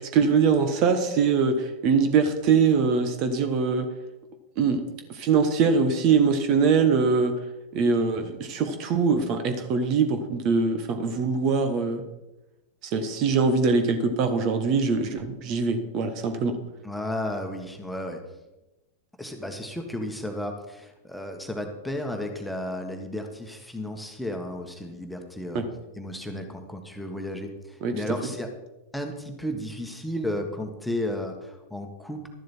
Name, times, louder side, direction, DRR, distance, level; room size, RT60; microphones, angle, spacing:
voice 1, 0.1-3.9 4.6-4.8 5.1-7.3 7.7-12.0 12.8-16.5 25.5-25.6 27.8-27.9, right 5 dB, 40° right, 7 dB, 1.4 m, -23 dB
voice 2, 16.8-18.2 19.2-25.6 26.0-28.5 28.9-32.3, left 1 dB, 5° left, 3 dB, 1.7 m, -33 dB
13.0 x 11.0 x 4.5 m, 0.99 s
figure-of-eight pair, 90°, 0 cm